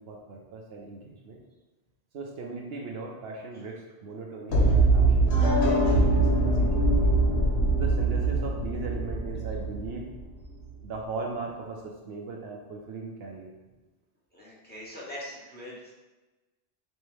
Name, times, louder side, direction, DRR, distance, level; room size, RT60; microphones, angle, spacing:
voice 1, 0.0-1.4 2.1-7.1 7.7-10.0 10.8-13.5, right 3 dB, 70° right, 0 dB, 0.8 m, -38 dB
sound 1, 4.5-10.5, right 2 dB, 75° left, 1.1 m, -23 dB
voice 2, 14.3-15.9, left 1 dB, 10° left, -6 dB, 0.9 m, -42 dB
5.4 x 2.1 x 3.1 m, 1.2 s
omnidirectional pair, 1.1 m